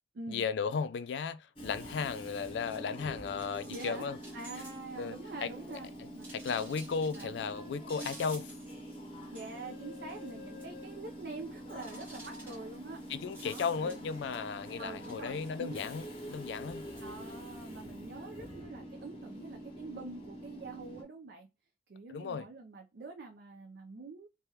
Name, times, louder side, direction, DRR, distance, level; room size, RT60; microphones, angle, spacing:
voice 1, 0.3-4.2 5.0-5.2 5.4-8.5 13.1-16.9 22.1-22.4, left 5 dB, 80° left, 0.3 m, -35 dB
Train / Subway metro underground, 1.6-21.0, equal, 30° left, 0.6 m, -46 dB
sound 1, 2.5-5.1 5.4-7.3 7.9-9.0 9.2-9.8 10.1-10.3 10.6-10.7 11.8-14.4 14.7-15.9 16.5-17.0, right 2 dB, 10° right, 1.3 m, -52 dB
voice 2, 3.7-4.0 4.3-5.9 6.1-6.3 7.1-7.3 9.3-13.0 13.4-14.0 14.8-15.8 17.0-21.5 21.9-24.3, right 3 dB, 70° right, 0.5 m, -45 dB
3.3 x 2.2 x 2.8 m
head